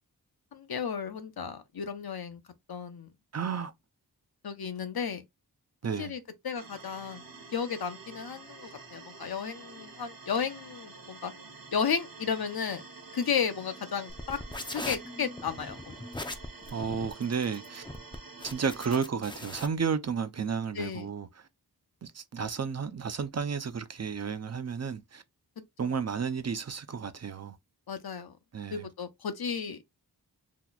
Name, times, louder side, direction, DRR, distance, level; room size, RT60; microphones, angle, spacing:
voice 1, 0.5-2.4 2.7-3.1 4.4-5.2 6.0-7.2 7.5-11.3 11.7-12.8 13.1-14.4 14.7-15.9 20.7-21.1 25.8-25.9 27.9-28.4 28.7-29.8, left 6 dB, 70° left, 0.7 m, -33 dB
voice 2, 3.3-3.7 5.8-6.1 16.7-17.8 18.4-21.5 22.0-25.2 25.8-27.6 28.5-28.9, right 6 dB, 45° right, 0.4 m, -32 dB
sound 1, 6.6-19.0, right 4 dB, 60° right, 0.9 m, -48 dB
sound 2, 14.1-19.7, left 2 dB, 10° left, 0.4 m, -40 dB
2.9 x 2.3 x 3.9 m
wide cardioid pair, 80°, 39 cm